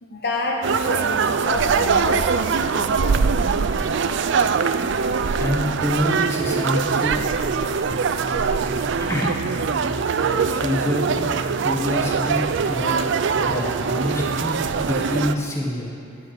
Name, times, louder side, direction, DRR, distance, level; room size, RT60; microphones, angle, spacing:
voice 1, 0.0-3.6 14.8-14.9, left 2 dB, 50° left, 0 dB, 0.9 m, -29 dB
sound 1, 0.6-15.3, right 5 dB, 60° right, 0.4 m, -22 dB
voice 2, 5.4-7.1 9.0-9.4 10.5-11.3 11.6-12.4 12.7-12.9 13.3-15.9, left 1 dB, 15° left, -3 dB, 1.5 m, -26 dB
sound 2, 7.2-15.0, left 2 dB, 30° left, 0.7 m, -37 dB
12.5 x 5.0 x 8.1 m, 2.3 s
head